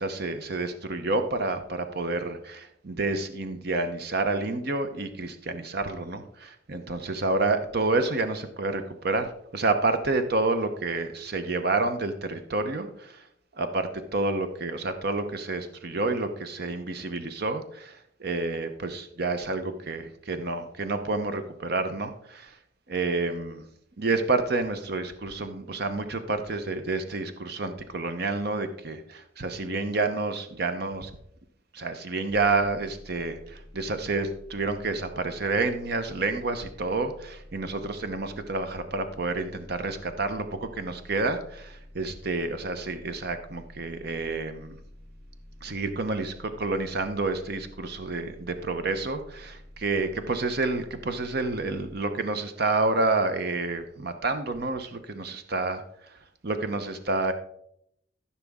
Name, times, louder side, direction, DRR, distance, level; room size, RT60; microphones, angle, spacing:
voice 1, 0.0-13.3 13.5-22.6 22.9-23.7 24.0-31.1 31.7-44.8 45.6-56.2 56.4-57.3, right 3 dB, 50° right, 9 dB, 0.8 m, -29 dB
sound 1, 32.3-52.0, equal, 5° left, 1.0 m, -49 dB
14.0 x 6.0 x 3.6 m, 0.72 s
head